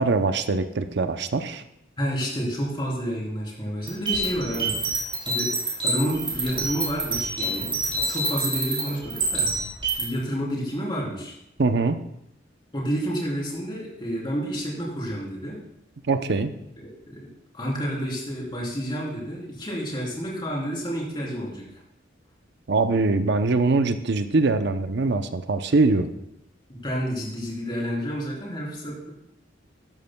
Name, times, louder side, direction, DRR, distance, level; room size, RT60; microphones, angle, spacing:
voice 1, 0.0-1.6 11.6-12.0 16.1-16.5 22.7-26.1, right 3 dB, 65° right, 9 dB, 0.7 m, -22 dB
voice 2, 2.0-5.6 5.8-7.7 8.1-9.5 10.0-11.3 12.7-15.6 16.8-17.3 17.5-21.8 26.7-29.1, equal, 25° left, -4 dB, 3.4 m, -30 dB
sound 1, 3.8-10.0, right 3 dB, 25° right, 4.0 m, -27 dB
13.0 x 12.5 x 2.3 m, 0.78 s
head